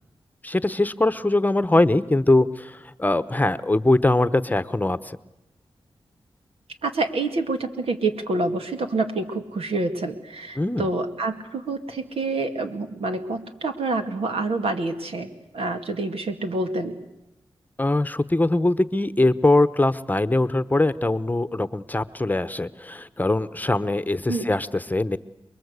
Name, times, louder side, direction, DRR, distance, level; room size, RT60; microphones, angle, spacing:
voice 1, 0.4-5.2 10.6-10.9 17.8-25.2, left 2 dB, 15° left, 14 dB, 1.0 m, -22 dB
voice 2, 6.8-16.9 24.3-24.5, right 2 dB, 80° right, 6 dB, 2.3 m, -27 dB
29.0 x 21.5 x 8.2 m, 0.90 s
cardioid pair, 60°, 10 cm